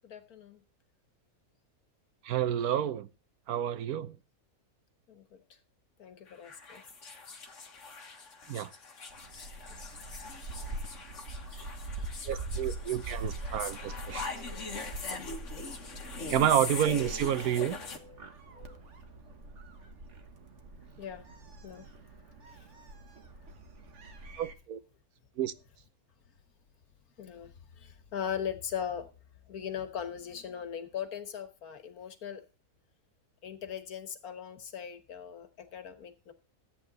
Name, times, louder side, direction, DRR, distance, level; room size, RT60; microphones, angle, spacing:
voice 1, 0.0-0.6 5.1-5.4 6.0-6.8 9.7-9.8 17.9-18.2 18.5-18.8 21.0-21.2 21.6-21.8 22.5-22.7 27.2-29.1 29.5-32.4 33.4-36.3, left 8 dB, 85° left, 1.8 m, -39 dB
voice 2, 2.2-3.1 3.5-4.1 8.5-8.7 12.3-14.3 16.3-17.8 24.4-24.8 25.4-25.5, right 10 dB, 85° right, 1.3 m, -29 dB
sound 1, 6.3-18.0, left 4 dB, 55° left, 1.9 m, -42 dB
Gull seagull, 9.1-24.5, right 2 dB, 55° right, 1.6 m, -43 dB
13.5 x 8.7 x 4.0 m
omnidirectional pair, 1.5 m